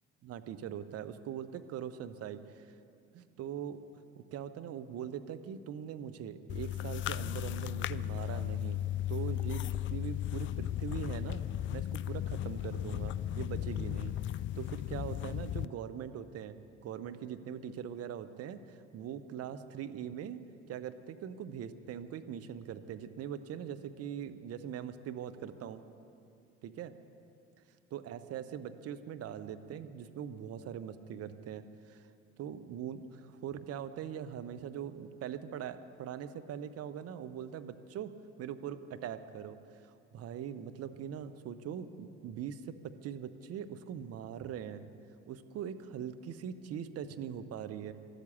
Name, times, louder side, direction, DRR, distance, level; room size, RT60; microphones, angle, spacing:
voice 1, 0.2-2.7 3.1-8.8 9.1-11.4 11.7-16.6 16.8-25.8 26.6-26.9 27.9-32.1 32.4-38.1 38.4-39.6 39.8-44.8 45.3-47.9, right 9 dB, 45° right, 10 dB, 1.0 m, -42 dB
sound 1, 6.5-15.7, left 12 dB, 35° left, 0.4 m, -35 dB
13.0 x 12.5 x 8.4 m, 2.4 s
figure-of-eight pair, 55°, 33 cm